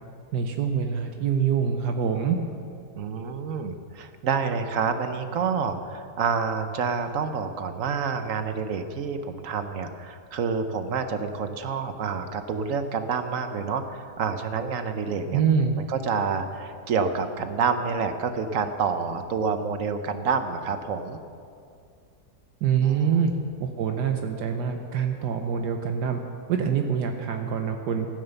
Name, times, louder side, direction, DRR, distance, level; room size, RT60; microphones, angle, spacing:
voice 1, 0.3-2.4 15.3-15.8 22.6-23.3 23.6-26.2 26.5-28.1, right 7 dB, 75° right, 4 dB, 1.4 m, -25 dB
voice 2, 2.9-15.4 15.8-21.2 22.8-23.4, right 5 dB, 55° right, 8 dB, 1.1 m, -28 dB
14.5 x 9.9 x 7.0 m, 2.4 s
omnidirectional pair, 1.8 m